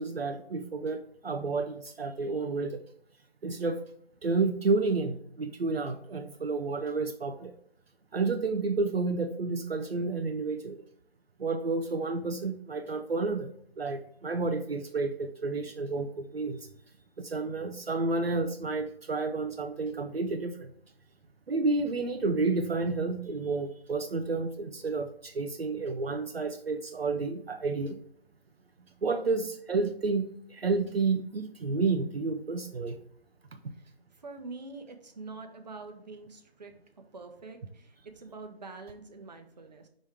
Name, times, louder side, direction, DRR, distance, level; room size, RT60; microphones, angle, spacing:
voice 1, 0.0-2.8 3.4-3.8 4.2-7.5 8.1-10.8 11.4-13.5 13.8-16.7 17.2-20.7 21.5-28.0 29.0-33.0 33.6-33.7, right 3 dB, 70° right, 5 dB, 0.7 m, -30 dB
voice 2, 33.7-36.7 37.1-39.9, right 3 dB, 40° right, 5 dB, 0.9 m, -45 dB
5.1 x 3.8 x 4.8 m, 0.66 s
figure-of-eight pair, 160°, 31 cm